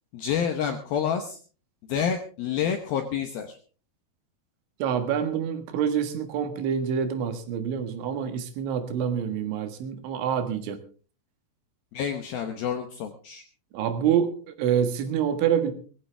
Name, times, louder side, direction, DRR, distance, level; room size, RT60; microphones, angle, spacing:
voice 1, 0.1-1.4 1.9-3.6 11.9-13.4, left 8 dB, 70° left, 2.5 m, -28 dB
voice 2, 4.8-10.8 13.7-15.7, right 8 dB, 80° right, 4.0 m, -26 dB
19.5 x 15.0 x 3.4 m
omnidirectional pair, 5.3 m